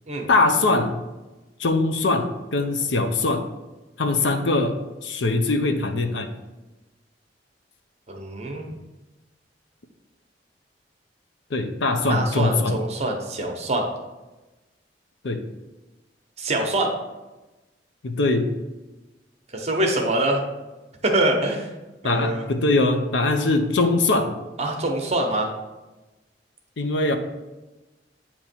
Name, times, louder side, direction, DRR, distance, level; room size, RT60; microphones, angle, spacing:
voice 1, 0.3-1.0 1.6-3.4 4.0-6.3 11.5-12.8 15.2-15.4 18.0-18.5 22.0-24.3 26.8-27.2, left 2 dB, 85° left, 5 dB, 0.6 m, -22 dB
voice 2, 8.1-8.7 12.1-13.9 16.4-16.9 19.5-20.4 21.0-21.7 22.0-22.5 24.6-25.5, right 1 dB, 35° right, 2 dB, 0.9 m, -24 dB
8.4 x 2.9 x 4.4 m, 1.1 s
head